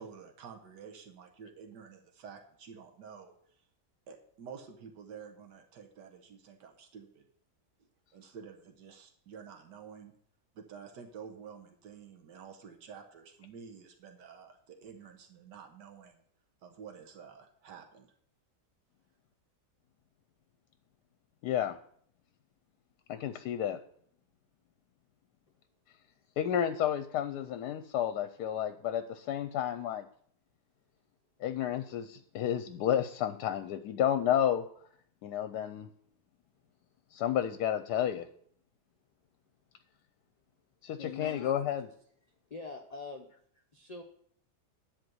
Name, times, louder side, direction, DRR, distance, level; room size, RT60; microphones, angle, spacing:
voice 1, 0.0-3.7 4.1-7.3 8.1-10.1 10.6-16.2 16.6-18.1, right 6 dB, 85° right, 5 dB, 1.7 m, -50 dB
voice 2, 21.4-21.8 23.1-23.8 26.4-30.1 31.4-34.6 35.2-35.9 37.1-38.3 40.8-41.9, left 10 dB, 75° left, 10 dB, 1.1 m, -31 dB
voice 3, 41.0-41.5 42.5-43.3 43.5-44.0, left 4 dB, 35° left, 2 dB, 0.7 m, -43 dB
10.5 x 4.2 x 7.8 m, 0.63 s
omnidirectional pair, 1.8 m